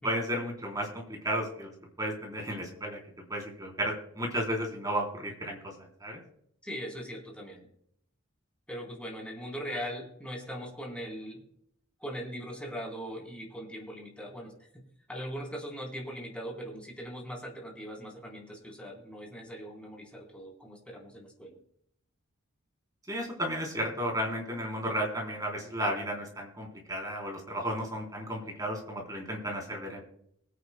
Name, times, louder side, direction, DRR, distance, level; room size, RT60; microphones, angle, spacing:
voice 1, 0.0-1.7 2.0-3.0 3.3-5.7 6.0-6.2 23.1-30.0, equal, 20° right, 0 dB, 3.6 m, -33 dB
voice 2, 6.6-7.7 8.7-11.5 12.0-21.6, equal, 5° left, -1 dB, 3.7 m, -40 dB
23.5 x 9.3 x 2.2 m, 0.69 s
head